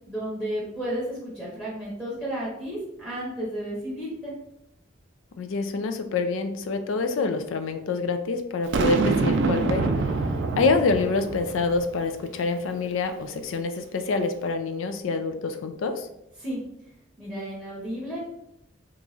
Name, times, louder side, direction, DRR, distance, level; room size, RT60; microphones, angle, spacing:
voice 1, 0.1-4.3 16.4-16.6 17.2-18.2, right 1 dB, 5° left, -8 dB, 0.8 m, -32 dB
voice 2, 5.4-9.9 10.6-16.1, left 4 dB, 70° left, 8 dB, 0.4 m, -26 dB
Boom, 8.7-12.0, right 3 dB, 60° right, 0.3 m, -25 dB
3.0 x 2.3 x 3.9 m, 0.82 s
head